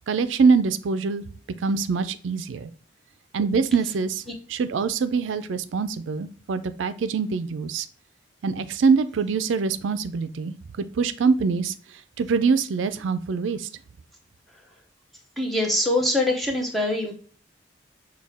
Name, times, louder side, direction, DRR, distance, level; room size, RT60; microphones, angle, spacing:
voice 1, 0.1-1.2 1.6-2.7 3.3-4.2 4.5-7.9 8.4-10.5 11.0-11.7 12.2-13.7, right 5 dB, 85° right, 12 dB, 0.4 m, -24 dB
voice 2, 15.4-17.1, left 1 dB, ahead, 0 dB, 0.8 m, -23 dB
6.3 x 2.3 x 3.4 m, 0.42 s
head